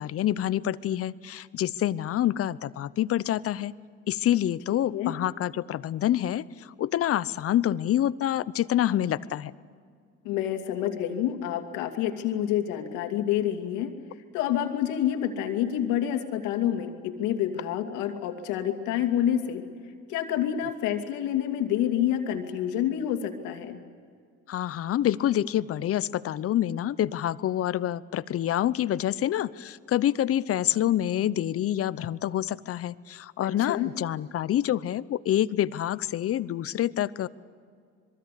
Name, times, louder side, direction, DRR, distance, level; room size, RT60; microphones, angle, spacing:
voice 1, 0.0-3.7 4.1-9.5 24.5-37.3, left 12 dB, 50° left, 17 dB, 0.8 m, -27 dB
voice 2, 10.2-13.9 14.3-19.7 20.1-23.8 33.4-33.9, left 10 dB, 85° left, 5 dB, 2.6 m, -28 dB
26.0 x 22.5 x 8.5 m, 2.1 s
supercardioid pair, 85°, 29 cm